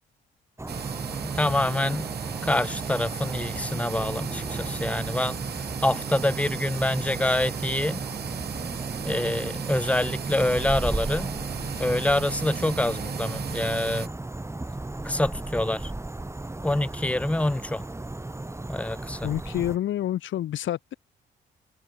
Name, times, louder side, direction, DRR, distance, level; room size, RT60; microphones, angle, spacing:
sound 1, 0.6-19.8, right 2 dB, 15° right, 7.6 m, -35 dB
sound 2, 0.7-14.1, right 8 dB, 55° right, 2.9 m, -35 dB
voice 1, 1.2-2.1 2.4-5.4 5.8-8.0 9.0-11.3 11.8-14.1 15.0-15.9 16.6-17.8 18.7-19.3, left 1 dB, 5° left, 1.5 m, -26 dB
voice 2, 19.2-20.9, left 12 dB, 75° left, 2.2 m, -28 dB
cardioid pair, 90°, 20 cm